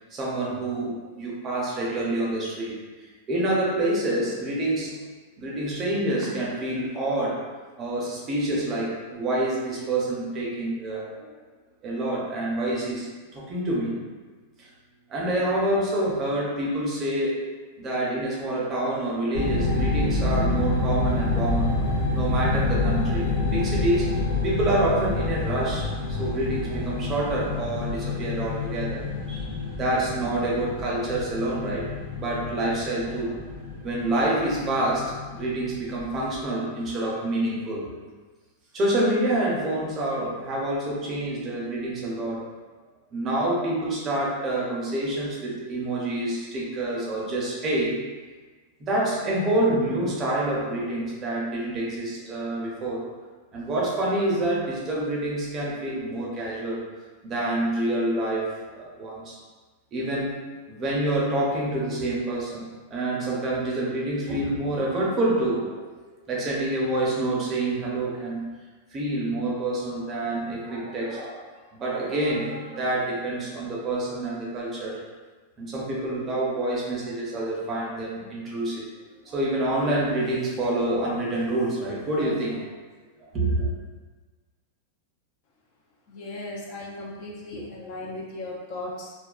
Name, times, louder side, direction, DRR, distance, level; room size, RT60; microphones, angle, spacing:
voice 1, 0.1-2.8 3.3-5.0 5.4-7.4 7.8-11.3 11.8-13.1 13.3-14.0 14.6-14.7 15.1-17.3 17.8-24.1 24.4-29.0 29.3-31.9 32.2-33.4 33.8-37.9 38.7-42.5 43.1-48.0 48.8-53.0 53.5-56.8 57.2-59.4 59.9-60.4 60.7-65.8 66.3-68.5 68.9-71.4 71.7-75.0 75.6-78.9 79.2-82.7 83.2-83.7, right 1 dB, 25° right, -4 dB, 0.6 m, -27 dB
sound 1, 19.3-36.4, left 2 dB, 85° left, 0.7 m, -28 dB
voice 2, 86.1-89.1, left 2 dB, 45° left, -3 dB, 0.5 m, -36 dB
2.3 x 2.2 x 2.4 m, 1.3 s
supercardioid pair, 135°, 0 cm